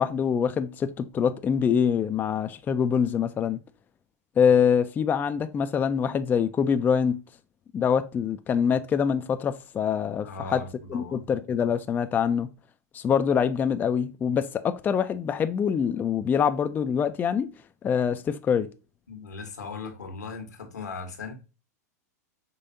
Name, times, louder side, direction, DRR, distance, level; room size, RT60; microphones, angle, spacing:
voice 1, 0.0-3.6 4.4-7.2 7.7-10.6 10.9-12.5 12.9-17.5 17.8-18.7, left 7 dB, 20° left, 0.4 m, -24 dB
voice 2, 10.2-11.2 19.1-21.3, left 4 dB, 85° left, 1.3 m, -38 dB
5.3 x 3.3 x 2.6 m
hypercardioid pair, 105°, 9 cm